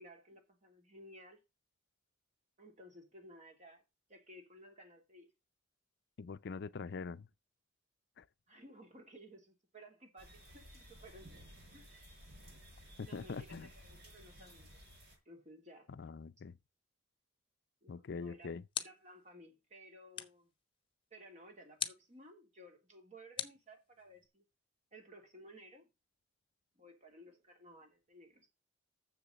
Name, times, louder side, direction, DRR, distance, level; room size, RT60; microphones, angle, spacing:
voice 1, 0.0-1.4 2.6-3.8 4.1-5.3 8.5-12.3 13.0-14.8 15.2-15.9 17.8-20.5 21.1-24.4 24.9-25.9 26.7-28.5, equal, 40° right, 3.1 m, -57 dB
voice 2, 6.2-7.3 8.2-8.3 13.0-13.7 16.0-16.6 17.9-18.6, left 4 dB, 60° left, 0.5 m, -43 dB
sound 1, 10.2-15.2, equal, 55° right, 7.0 m, -56 dB
sound 2, 18.0-19.2 20.1-20.5 21.8-22.2 23.4-24.3, left 8 dB, 25° left, 1.0 m, -42 dB
7.2 x 7.0 x 6.6 m
head